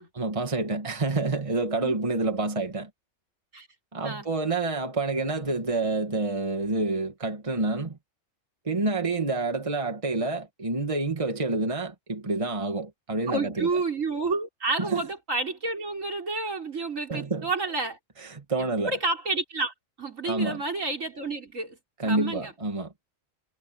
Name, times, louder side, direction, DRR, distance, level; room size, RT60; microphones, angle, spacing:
voice 1, 0.0-2.9 3.9-8.0 8.7-13.7 14.8-15.1 17.1-17.5 18.2-18.9 20.2-20.6 22.0-22.9, right 3 dB, 25° right, 1.9 m, -28 dB
voice 2, 13.3-18.0 18.6-22.5, right 3 dB, 80° right, 5.3 m, -30 dB
omnidirectional pair, 1.3 m